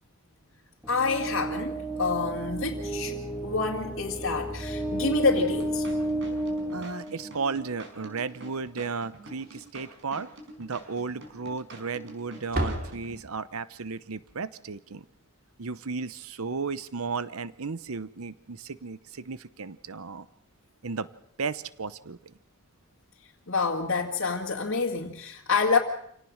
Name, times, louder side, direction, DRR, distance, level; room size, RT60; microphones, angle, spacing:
sound 1, 0.8-7.8, right 1 dB, 5° right, 2.5 m, -32 dB
voice 1, 0.9-5.9 23.5-25.8, left 4 dB, 65° left, -1 dB, 2.2 m, -27 dB
sound 2, 5.4-13.2, right 1 dB, 55° right, 5.2 m, -47 dB
voice 2, 6.7-10.3 10.6-15.1 15.6-20.3 20.8-21.1 21.4-22.3, right 4 dB, 80° right, 15 dB, 0.9 m, -34 dB
Slam, 9.3-10.0 10.3-10.4 10.8-10.9 11.7-12.1 12.4-13.7 16.3-16.4 16.7-16.9 18.4-18.6, right 1 dB, 40° right, 3.0 m, -35 dB
27.5 x 18.0 x 6.4 m, 0.71 s
head